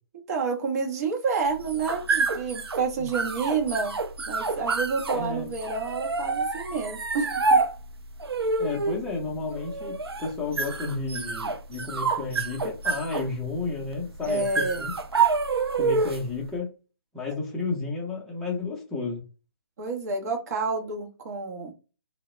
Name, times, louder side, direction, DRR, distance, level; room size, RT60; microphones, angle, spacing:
voice 1, 0.3-3.9 4.3-7.6 14.3-14.8 19.8-21.7, right 4 dB, 40° right, 1 dB, 0.7 m, -29 dB
sound 1, 1.5-16.4, right 4 dB, 85° right, 0.4 m, -28 dB
voice 2, 5.1-5.5 8.6-14.9 15.7-16.7 17.1-19.2, left 3 dB, 5° left, -4 dB, 0.5 m, -32 dB
2.2 x 2.0 x 2.9 m, 0.32 s
figure-of-eight pair, 145°, 13 cm